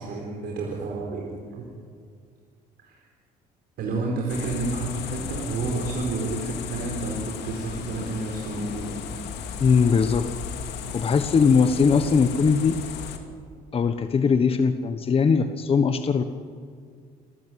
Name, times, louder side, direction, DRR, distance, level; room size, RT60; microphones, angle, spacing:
voice 1, 0.0-1.7 2.8-3.0 3.8-9.0, right 3 dB, 70° right, -2 dB, 4.5 m, -30 dB
sound 1, 4.3-13.2, left 7 dB, 85° left, 2.4 m, -35 dB
voice 2, 9.6-10.3 10.9-12.8 13.7-16.2, left 5 dB, 35° left, 8 dB, 1.2 m, -20 dB
28.5 x 14.0 x 9.2 m, 2.1 s
cardioid pair, 110°, 17 cm